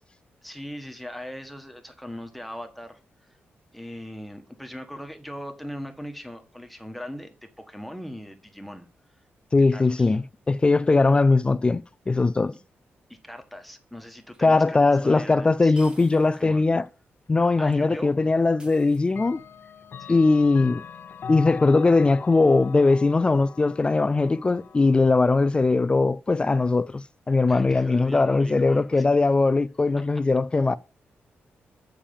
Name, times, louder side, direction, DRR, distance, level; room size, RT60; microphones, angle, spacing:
voice 1, 0.4-3.0 3.3-3.4 3.7-8.9 9.7-10.2 13.1-15.7 16.1-16.7 17.6-18.1 20.0-20.2 27.5-29.0, equal, ahead, 1.3 m, -40 dB
voice 2, 9.5-12.5 14.4-16.9 17.3-19.4 20.1-20.8 21.3-30.8, left 3 dB, 25° left, 0.3 m, -20 dB
sound 1, 14.3-14.4 15.8-16.5 16.8-16.9 18.6-19.5, right 1 dB, 20° right, 1.8 m, -50 dB
Clock, 17.7-17.8 19.1-25.9, left 6 dB, 60° left, 0.6 m, -41 dB
7.2 x 5.0 x 7.0 m
cardioid pair, 100°, 4 cm